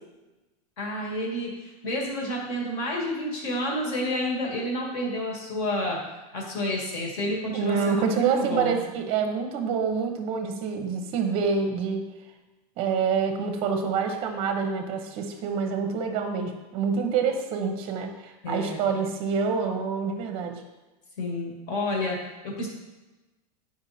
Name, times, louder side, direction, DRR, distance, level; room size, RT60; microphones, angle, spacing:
voice 1, 0.8-6.0 6.3-8.9 18.4-18.9 21.2-22.2 22.4-22.7, left 1 dB, 40° left, -2 dB, 2.0 m, -30 dB
voice 2, 7.5-12.1 12.8-20.6, right 5 dB, 25° right, 6 dB, 0.9 m, -27 dB
9.7 x 5.1 x 4.2 m, 1.1 s
supercardioid pair, 180°, 20 cm